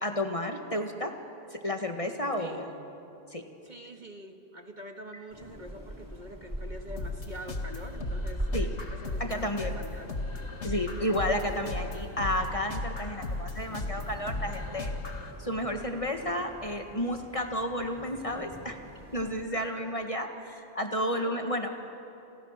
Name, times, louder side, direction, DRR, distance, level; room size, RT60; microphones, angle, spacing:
voice 1, 0.0-1.1 1.5-2.7 3.3-3.4 8.5-8.7 9.2-9.7 10.6-14.9 15.4-18.8 19.1-21.8, equal, 25° left, 4 dB, 1.8 m, -31 dB
voice 2, 2.4-2.9 3.6-8.5 8.9-10.2 10.7-11.1 19.5-20.2 21.1-21.8, equal, 40° right, 4 dB, 1.9 m, -46 dB
sound 1, 5.3-19.5, equal, 15° right, 4.2 m, -42 dB
sound 2, 7.0-15.3, left 2 dB, 65° left, 2.1 m, -36 dB
29.5 x 29.0 x 6.7 m, 2.8 s
omnidirectional pair, 1.3 m